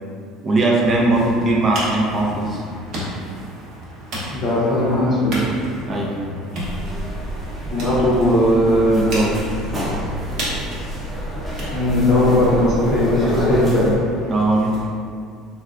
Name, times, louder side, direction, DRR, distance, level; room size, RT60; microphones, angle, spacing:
voice 1, 0.4-2.6 5.9-6.2 8.9-9.4 14.3-14.8, right 2 dB, 30° right, -2 dB, 0.5 m, -19 dB
sound 1, 0.8-14.9, equal, 55° right, 0.9 m, -33 dB
voice 2, 4.3-5.5 7.7-9.4 11.7-13.9, left 1 dB, 30° left, -8 dB, 0.5 m, -18 dB
sound 2, 6.6-14.0, right 1 dB, 5° right, 0.7 m, -29 dB
3.7 x 2.2 x 2.4 m, 2.3 s
cardioid pair, 130°, 0 cm